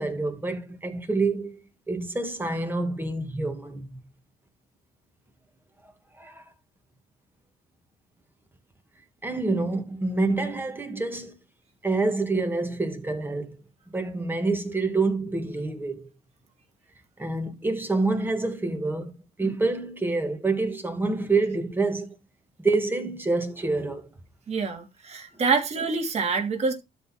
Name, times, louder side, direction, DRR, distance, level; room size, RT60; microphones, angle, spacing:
voice 1, 0.0-1.6 1.9-3.9 6.2-6.4 9.2-11.3 11.8-13.6 13.9-16.1 17.2-19.1 19.4-22.1 22.6-24.1, right 3 dB, 10° right, 2.1 m, -27 dB
voice 2, 24.5-26.7, right 4 dB, 40° right, 2.8 m, -26 dB
12.5 x 4.2 x 4.4 m
cardioid pair, 110°, 17 cm